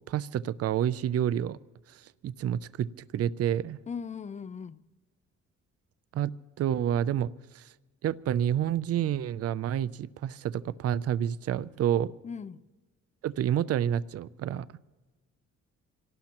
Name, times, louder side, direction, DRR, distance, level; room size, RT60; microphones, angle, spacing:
voice 1, 0.1-1.6 1.9-3.8 6.1-7.3 7.5-7.6 8.0-12.1 13.2-14.7, right 10 dB, 50° right, 0.5 m, -29 dB
voice 2, 3.9-4.8 12.2-12.6, left 6 dB, 25° left, 0.5 m, -38 dB
26.0 x 18.0 x 3.0 m
cardioid pair, 90°, 30 cm